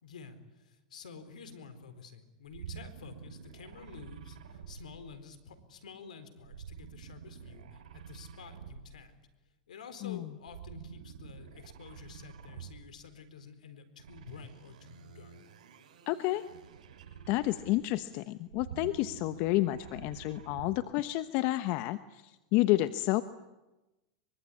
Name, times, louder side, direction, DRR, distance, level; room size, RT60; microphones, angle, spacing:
voice 1, 0.0-9.1 9.7-15.4, left 5 dB, 85° left, 11 dB, 4.2 m, -50 dB
sound 1, 2.5-5.5 6.4-9.1 10.4-13.0 14.0-18.0 18.4-20.9, right 8 dB, 80° right, 6.6 m, -49 dB
voice 2, 16.1-16.4 17.3-23.2, left 17 dB, 55° left, 11 dB, 1.1 m, -30 dB
24.0 x 24.0 x 9.8 m, 1.0 s
hypercardioid pair, 105°, 4 cm